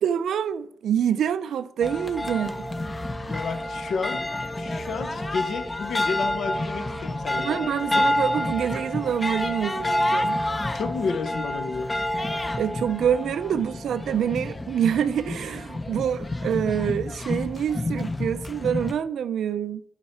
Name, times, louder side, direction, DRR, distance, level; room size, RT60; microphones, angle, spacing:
voice 1, 0.0-2.7 7.4-10.4 12.6-19.8, right 8 dB, 80° right, 0.3 m, -26 dB
sound 1, 1.8-18.9, left 1 dB, 20° left, 0.6 m, -29 dB
voice 2, 3.2-7.7 10.7-11.9, left 5 dB, 65° left, 0.7 m, -31 dB
11.5 x 4.4 x 4.4 m
cardioid pair, 115°, 0 cm